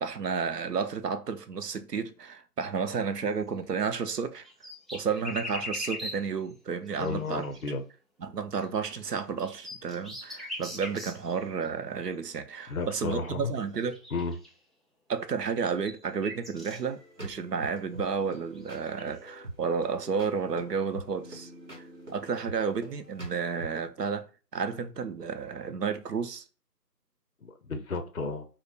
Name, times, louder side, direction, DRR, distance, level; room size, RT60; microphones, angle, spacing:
voice 1, 0.0-4.5 4.9-7.5 8.2-14.0 15.1-21.5 22.1-26.4, right 6 dB, 70° right, 0.6 m, -32 dB
sound 1, 3.5-3.6 3.9-4.0 4.4-6.4 6.9-7.6 8.6-8.7 9.2-11.3 11.6-11.7 13.4-13.5 13.8-14.5 15.5-16.8 18.0-19.1, left 1 dB, ahead, 0.4 m, -40 dB
voice 2, 7.0-7.8 12.7-13.5 14.1-14.3 27.4-28.4, left 4 dB, 60° left, 0.5 m, -33 dB
sound 2, 16.8-23.9, right 1 dB, 45° right, 0.9 m, -45 dB
2.5 x 2.1 x 3.3 m
figure-of-eight pair, 170°, 49 cm